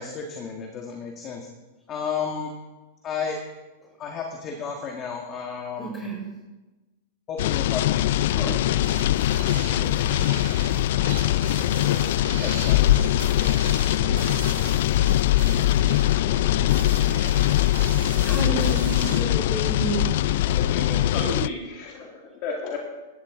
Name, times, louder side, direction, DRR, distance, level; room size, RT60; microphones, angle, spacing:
voice 1, 0.0-1.5 1.9-2.5 3.0-3.4 4.0-5.9 7.3-8.2 12.3-12.8, left 6 dB, 30° left, 2 dB, 1.6 m, -32 dB
voice 2, 5.8-6.2 8.3-8.6 9.7-10.2 18.2-20.2 20.4-20.5 21.2-21.4, right 2 dB, 10° left, -2 dB, 4.8 m, -31 dB
sound 1, 7.4-21.5, left 14 dB, 65° left, 0.3 m, -22 dB
sound 2, 8.8-19.2, right 7 dB, 85° right, 2.1 m, -38 dB
voice 3, 20.4-22.8, left 4 dB, 45° left, 0 dB, 2.3 m, -35 dB
15.5 x 12.5 x 3.8 m, 1.1 s
supercardioid pair, 145°, 0 cm